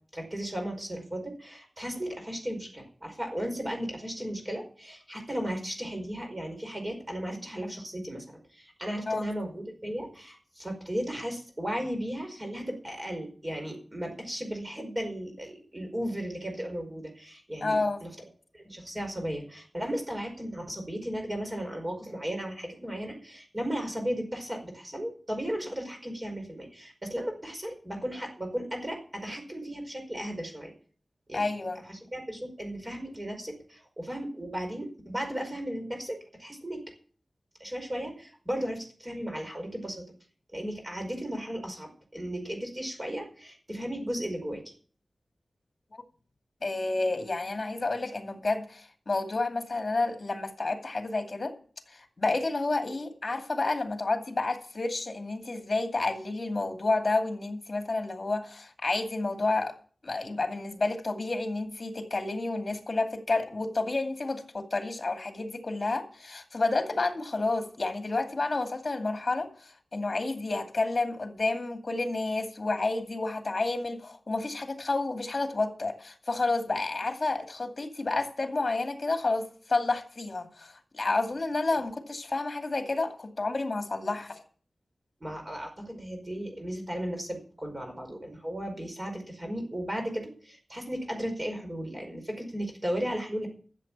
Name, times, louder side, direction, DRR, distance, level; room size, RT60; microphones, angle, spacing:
voice 1, 0.1-18.1 18.5-30.7 31.3-31.4 31.9-36.8 37.6-40.0 40.5-44.7 85.2-93.5, equal, 25° right, 3 dB, 4.8 m, -35 dB
voice 2, 17.6-18.0 31.3-31.8 46.6-51.5 51.9-59.7 60.0-84.4, left 3 dB, 45° left, 5 dB, 2.4 m, -30 dB
13.5 x 7.6 x 7.3 m, 0.44 s
wide cardioid pair, 85°, 0 cm